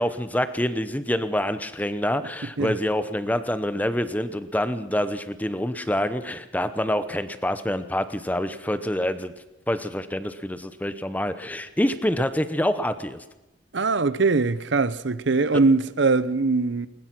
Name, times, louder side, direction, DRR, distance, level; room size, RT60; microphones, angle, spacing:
voice 1, 0.0-9.3 9.7-13.2, left 1 dB, 10° left, 0.9 m, -26 dB
voice 2, 13.7-16.9, right 3 dB, 70° right, 0.8 m, -22 dB
21.0 x 20.5 x 6.1 m
head